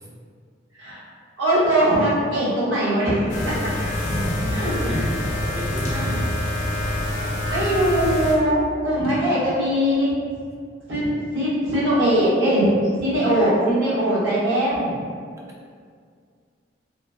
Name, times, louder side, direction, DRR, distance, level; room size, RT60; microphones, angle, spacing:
voice 1, 1.4-3.5 4.5-5.0 7.5-10.1 10.9-15.0, right 1 dB, 85° right, -10 dB, 1.1 m, -21 dB
sound 1, 3.3-8.3, left 1 dB, 40° left, 0.5 m, -25 dB
voice 2, 3.8-6.3, equal, 15° right, -4 dB, 0.3 m, -34 dB
3.0 x 2.0 x 2.2 m, 2.1 s
head